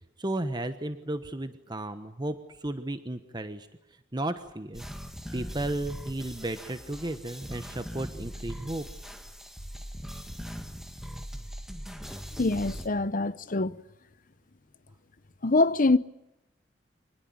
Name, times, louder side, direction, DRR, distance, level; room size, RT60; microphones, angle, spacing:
voice 1, 0.2-3.7 4.1-4.8 5.3-8.9, right 1 dB, 20° right, 1.1 m, -34 dB
sound 1, 4.7-12.9, equal, ahead, 1.8 m, -40 dB
voice 2, 12.4-13.8 15.4-16.0, left 2 dB, 45° left, 0.9 m, -24 dB
26.0 x 20.0 x 9.0 m
head